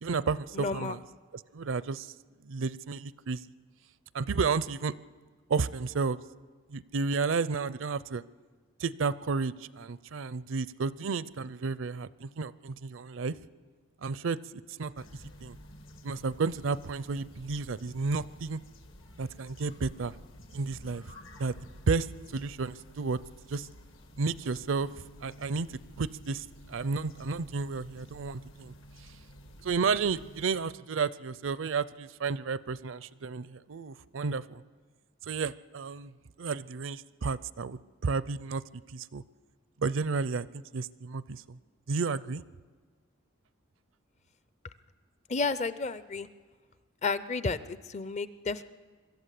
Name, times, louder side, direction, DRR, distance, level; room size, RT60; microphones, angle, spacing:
voice 1, 0.0-1.0 1.5-2.1 2.4-3.4 4.1-4.9 5.5-6.2 6.7-8.2 8.8-13.4 14.0-14.4 14.8-15.1 15.4-15.6 16.0-18.6 19.2-20.1 20.5-21.0 21.4-21.5 21.9-23.2 23.5-23.7 24.2-24.9 25.2-28.7 29.6-34.6 35.3-36.1 36.4-38.6 38.9-39.2 39.8-41.6 41.9-42.4, right 4 dB, 65° right, 18 dB, 0.5 m, -32 dB
voice 2, 0.5-1.0 45.3-46.3 47.0-48.6, left 4 dB, 35° left, 15 dB, 0.6 m, -32 dB
sound 1, 15.0-30.5, equal, 70° left, 1.8 m, -51 dB
24.0 x 13.5 x 8.3 m, 1.5 s
head